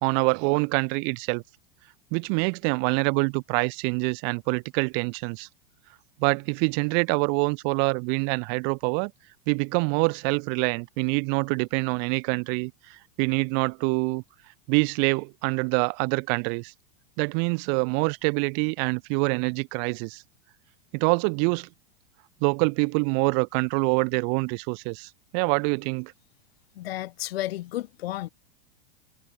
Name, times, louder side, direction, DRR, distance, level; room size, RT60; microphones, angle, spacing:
voice 1, 0.0-1.4 2.1-5.5 6.2-9.1 9.5-12.7 13.2-14.2 14.7-16.7 17.2-20.2 20.9-21.7 22.4-26.1, right 40 dB or more, 35° right, 1.2 m, -25 dB
voice 2, 26.8-28.3, left 15 dB, 70° left, 2.2 m, -32 dB
supercardioid pair, 170°, 31 cm